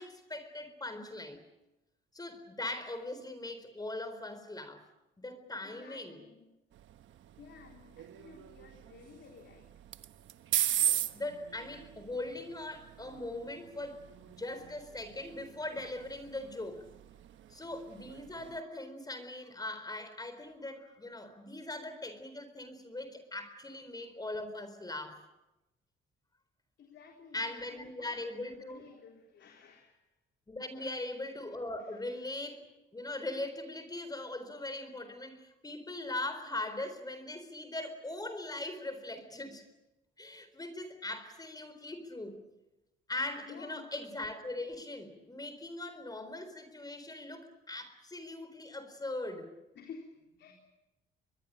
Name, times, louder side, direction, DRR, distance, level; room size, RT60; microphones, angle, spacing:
voice 1, 0.0-1.4 2.1-4.9 5.2-6.2 11.1-14.0 14.4-16.9 17.5-25.2 27.3-28.9 30.5-32.6 32.9-39.6 40.2-42.4 43.1-49.5, left 2 dB, 20° left, 10 dB, 4.1 m, -40 dB
voice 2, 5.6-6.5 7.4-9.7 26.8-30.0 30.8-31.1 43.5-43.9 49.7-50.5, left 6 dB, 65° left, 2 dB, 4.0 m, -53 dB
sound 1, 6.7-18.6, right 11 dB, 75° right, 1.2 m, -39 dB
23.5 x 22.0 x 8.9 m, 0.97 s
cardioid pair, 90°, 20 cm